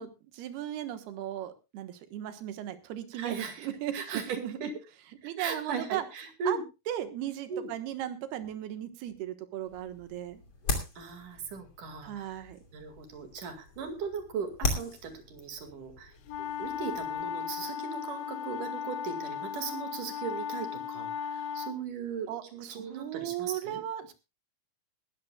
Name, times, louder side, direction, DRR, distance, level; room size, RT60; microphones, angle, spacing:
voice 1, 0.0-4.7 5.2-6.1 6.5-6.6 6.9-10.4 12.0-12.6 21.3-21.6 22.3-24.1, right 11 dB, 90° right, 10 dB, 3.3 m, -37 dB
voice 2, 3.1-3.7 3.9-4.2 4.6-4.7 5.2-6.6 7.5-7.7 11.0-12.5 12.7-16.1 16.4-23.8, right 6 dB, 60° right, 6 dB, 3.5 m, -38 dB
sound 1, 9.6-17.3, left 3 dB, 35° left, 3.0 m, -39 dB
sound 2, 16.3-21.8, left 8 dB, 75° left, 1.7 m, -36 dB
20.5 x 13.0 x 2.3 m, 0.27 s
omnidirectional pair, 4.4 m